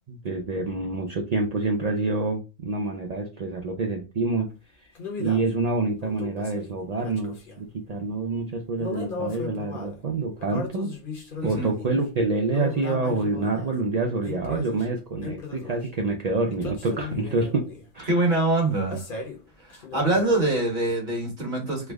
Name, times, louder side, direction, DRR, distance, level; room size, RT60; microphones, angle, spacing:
voice 1, 0.1-4.5 5.2-10.9 11.4-17.6 17.9-18.2, right 3 dB, 70° right, 1 dB, 0.3 m, -27 dB
sound 1, 4.9-5.5 6.0-7.6 8.8-10.0 10.4-12.0 12.5-13.7 14.2-14.9 15.2-15.9 16.5-17.9 18.9-19.4 19.7-20.4, left 4 dB, 50° left, 1.0 m, -36 dB
voice 2, 18.1-19.0 19.7-21.9, right 2 dB, 40° right, 1 dB, 1.3 m, -24 dB
3.3 x 2.0 x 3.4 m, 0.29 s
omnidirectional pair, 1.3 m